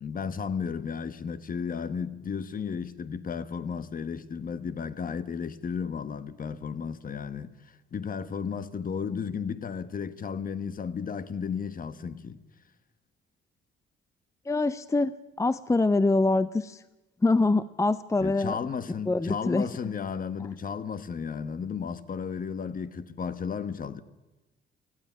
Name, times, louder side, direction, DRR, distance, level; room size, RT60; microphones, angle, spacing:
voice 1, 0.0-12.4 18.2-24.0, left 6 dB, 45° left, 1.3 m, -34 dB
voice 2, 14.5-16.8 17.2-18.6 19.1-20.0, left 3 dB, 15° left, 0.6 m, -25 dB
18.5 x 14.5 x 9.8 m
cardioid pair, 90°, 20 cm